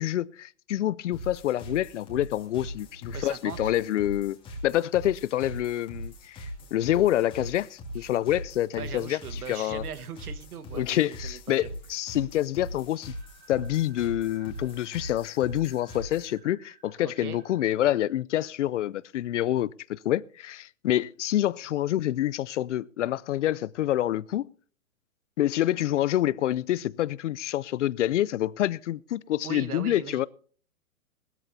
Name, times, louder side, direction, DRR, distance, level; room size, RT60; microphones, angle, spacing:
voice 1, 0.0-4.4 4.6-9.8 10.8-13.1 13.5-24.5 25.4-30.3, left 13 dB, 55° left, 0.5 m, -27 dB
sound 1, 1.1-16.4, equal, 10° left, 2.5 m, -41 dB
voice 2, 3.1-3.7 8.7-11.7 17.0-17.4 29.4-30.3, right 8 dB, 85° right, 1.5 m, -40 dB
sound 2, 13.0-18.1, right 7 dB, 60° right, 4.9 m, -58 dB
20.5 x 13.5 x 2.7 m
hypercardioid pair, 165°, 44 cm